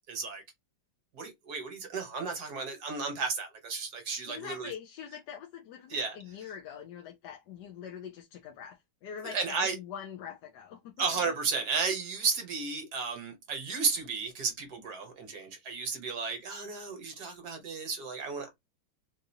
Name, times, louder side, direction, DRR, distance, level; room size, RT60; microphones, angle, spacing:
voice 1, 0.1-0.4 1.1-4.7 5.9-6.2 9.2-9.8 11.0-18.5, right 4 dB, 60° right, 1.5 m, -33 dB
voice 2, 4.3-11.0, left 8 dB, 70° left, 1.1 m, -44 dB
4.0 x 2.5 x 2.7 m
omnidirectional pair, 2.1 m